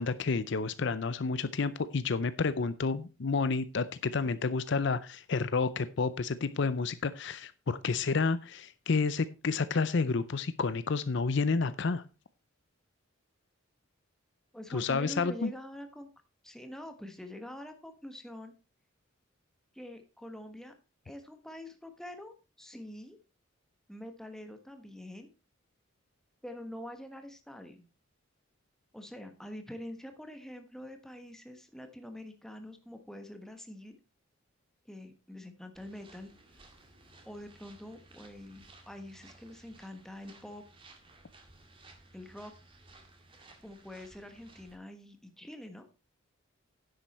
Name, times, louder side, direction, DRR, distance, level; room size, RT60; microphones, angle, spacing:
voice 1, 0.0-12.0 14.7-15.5, left 4 dB, 55° left, 15 dB, 0.5 m, -30 dB
voice 2, 14.5-16.1 16.4-18.5 19.7-20.7 21.0-23.2 23.9-25.3 26.4-27.8 28.9-34.0 34.9-36.3 37.2-40.6 42.1-42.5 43.6-45.9, left 1 dB, ahead, 6 dB, 1.2 m, -45 dB
sound 1, 35.7-44.8, right 2 dB, 25° right, 2.0 m, -57 dB
10.5 x 8.0 x 4.3 m, 0.31 s
head